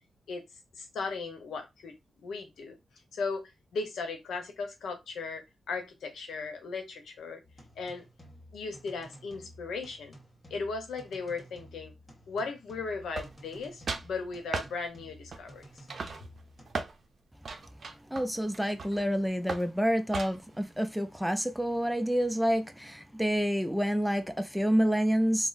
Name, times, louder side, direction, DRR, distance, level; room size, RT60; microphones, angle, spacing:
voice 1, 0.7-2.7 3.1-5.4 5.7-7.4 7.8-8.1 8.5-10.2 10.5-11.9 12.3-15.9, left 4 dB, 90° left, 0.8 m, -37 dB
sound 1, 7.4-16.7, equal, 30° left, 1.4 m, -53 dB
sound 2, 13.1-13.6 13.9-14.1 14.5-14.7 15.3-15.6 15.9-17.0 17.4-19.1 19.5-19.7 20.1-20.5, right 4 dB, 60° right, 0.5 m, -37 dB
voice 2, 18.1-25.5, equal, ahead, 0.4 m, -28 dB
3.7 x 2.0 x 2.5 m
cardioid pair, 65°, 0 cm